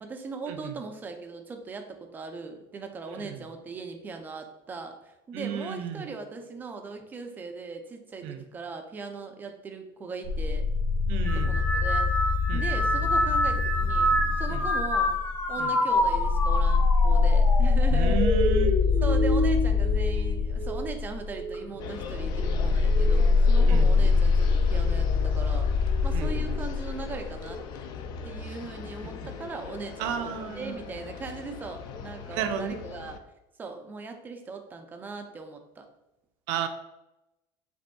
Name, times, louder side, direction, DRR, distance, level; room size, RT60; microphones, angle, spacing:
voice 1, 0.0-10.7 11.2-12.1 12.5-15.1 15.5-18.2 19.0-27.6 28.2-33.2 33.6-35.9, right 4 dB, 20° right, 5 dB, 0.4 m, -39 dB
voice 2, 5.3-6.1 8.2-8.4 11.1-11.6 12.5-12.6 14.5-14.6 15.6-15.7 17.9-18.8 23.7-23.9 26.1-26.5 30.0-30.9 32.3-32.8 36.5-36.7, right 8 dB, 70° right, 7 dB, 0.5 m, -33 dB
sound 1, 10.2-15.4 15.9-27.5, left 4 dB, 85° left, 1.1 m, -24 dB
sound 2, 11.2-20.8 21.3-21.9 22.8-23.2, equal, 20° left, 0.7 m, -28 dB
sound 3, 21.8-33.2, left 5 dB, 45° left, 0.4 m, -40 dB
5.0 x 3.5 x 2.3 m, 0.92 s
cardioid pair, 155°, 10 cm